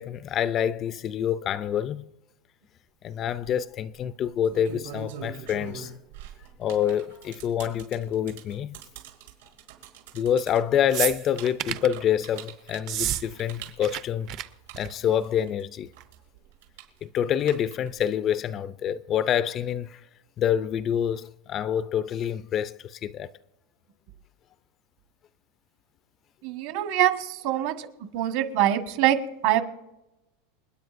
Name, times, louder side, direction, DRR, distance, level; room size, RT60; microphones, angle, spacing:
voice 1, 0.0-2.1 3.0-5.9 6.6-8.8 10.1-14.3 14.8-15.9 17.0-20.0 20.4-23.3, left 9 dB, 25° left, 0.3 m, -27 dB
sound 1, 3.2-3.5 4.3-15.6 15.9-18.0, right 8 dB, 85° right, 5.0 m, -43 dB
sound 2, 10.9-11.9 12.8-13.2 13.5-14.0 14.3-14.4 14.7-15.1 16.0-16.1, right 11 dB, 35° right, 0.5 m, -30 dB
voice 2, 26.4-27.9 28.1-29.6, right 12 dB, 55° right, 1.3 m, -24 dB
29.0 x 9.8 x 2.5 m
supercardioid pair, 165°, 0 cm